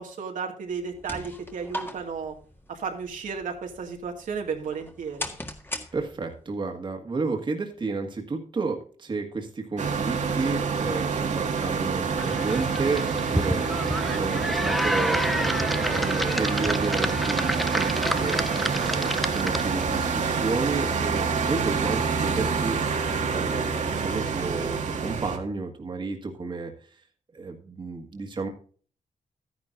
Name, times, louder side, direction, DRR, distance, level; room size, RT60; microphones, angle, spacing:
voice 1, 0.0-2.3 2.7-5.3, right 5 dB, 80° right, 2 dB, 2.0 m, -33 dB
sound 1, 0.7-6.5, left 1 dB, 15° left, 1.8 m, -40 dB
voice 2, 5.9-18.4 18.9-22.8 23.3-26.7 27.3-28.5, right 4 dB, 35° right, 3 dB, 1.7 m, -32 dB
sound 2, 9.8-25.4, right 5 dB, 65° right, 1.8 m, -27 dB
sound 3, 12.2-19.9, equal, ahead, 0.5 m, -29 dB
12.5 x 10.5 x 2.5 m, 0.43 s
wide cardioid pair, 115°, 13 cm